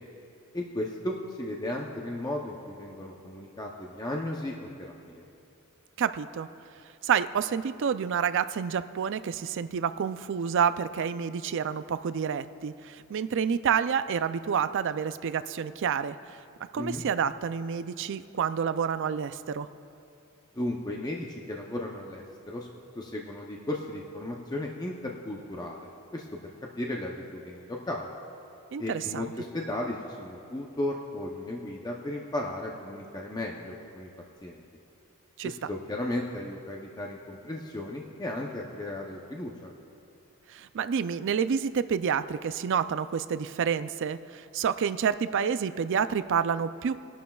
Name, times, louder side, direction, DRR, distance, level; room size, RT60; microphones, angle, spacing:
voice 1, 0.5-4.7 5.1-5.2 16.7-17.0 20.6-22.7 22.9-28.1 28.8-34.1 34.4-34.6 35.4-39.7, left 1 dB, 20° left, -1 dB, 0.6 m, -35 dB
voice 2, 6.0-6.5 7.0-16.4 16.7-19.7 28.7-29.2 35.4-35.5 40.5-47.0, right 7 dB, 55° right, 12 dB, 0.4 m, -29 dB
21.5 x 11.5 x 2.3 m, 2.6 s
head